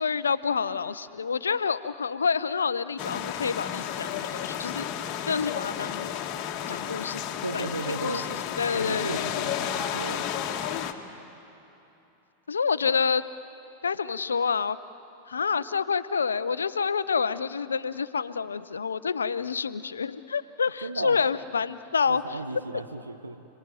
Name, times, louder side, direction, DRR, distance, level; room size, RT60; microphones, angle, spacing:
voice 1, 0.0-4.9 5.3-6.1 6.7-7.2 7.5-8.2 8.6-9.3 12.5-13.2 13.8-14.8 15.3-22.2, left 5 dB, 70° left, 14 dB, 0.7 m, -28 dB
sound 1, 3.0-10.9, left 9 dB, 35° left, 1.7 m, -32 dB
voice 2, 7.4-8.3 8.7-10.3 20.8-21.2 22.1-23.4, right 2 dB, 80° right, 8 dB, 1.3 m, -35 dB
30.0 x 19.5 x 9.3 m, 2.9 s
figure-of-eight pair, 90°, 0 cm